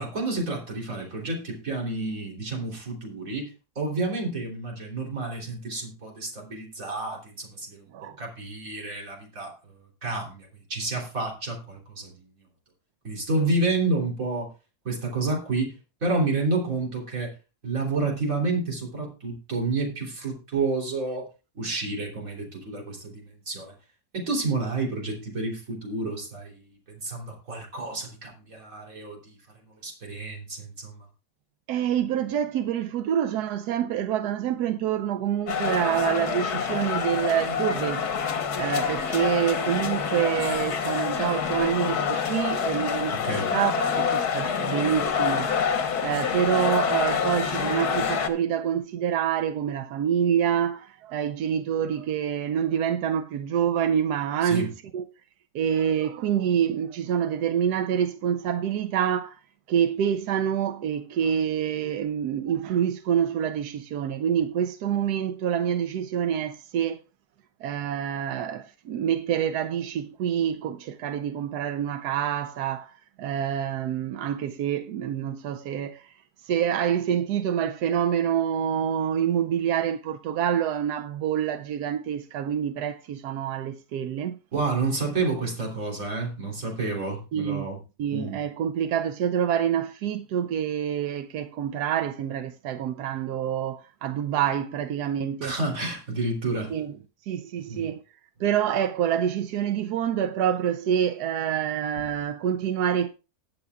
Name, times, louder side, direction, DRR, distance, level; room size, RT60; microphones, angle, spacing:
voice 1, 0.0-7.9 8.2-9.7 10.0-12.2 13.0-14.5 14.9-15.7 16.0-17.3 17.6-21.3 21.6-23.7 24.1-26.6 26.9-29.3 29.8-31.0 43.1-43.5 54.4-54.7 84.5-87.8 88.1-88.4 95.4-96.7 97.7-97.9, right 3 dB, 60° right, 3.6 m, -30 dB
voice 2, 31.7-38.1 38.3-55.0 55.5-59.4 59.7-67.0 67.6-84.4 87.3-87.7 88.0-95.5 96.7-97.0 97.3-98.0 98.4-103.1, right 9 dB, 90° right, 1.2 m, -27 dB
sound 1, 35.5-48.3, left 6 dB, 80° left, 1.7 m, -27 dB
20.5 x 7.0 x 2.3 m
omnidirectional pair, 1.6 m